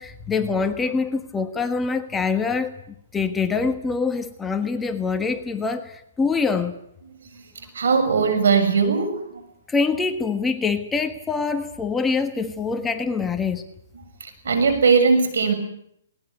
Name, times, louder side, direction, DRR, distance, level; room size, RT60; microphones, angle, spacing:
voice 1, 0.0-2.7 3.1-6.8 9.7-13.6, left 4 dB, 10° left, 7 dB, 1.4 m, -24 dB
voice 2, 7.8-9.1 14.5-15.5, right 5 dB, 75° right, 9 dB, 7.1 m, -18 dB
20.0 x 19.5 x 9.5 m, 0.72 s
hypercardioid pair, 150°, 0 cm